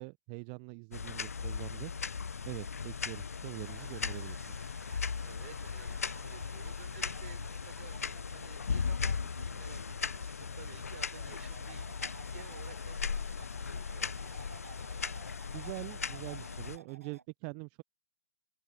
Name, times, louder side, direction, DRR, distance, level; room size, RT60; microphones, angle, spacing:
voice 1, 0.0-4.7 15.5-17.8, right 36 dB, 30° right, 0.6 m, -44 dB
sound 1, 0.9-16.8, left 5 dB, 75° left, 0.5 m, -38 dB
sound 2, 3.6-17.2, right 5 dB, 75° right, 7.0 m, -55 dB
voice 2, 5.2-11.8 12.3-14.7, right 11 dB, 55° right, 4.0 m, -54 dB
figure-of-eight pair, 125°, 8 cm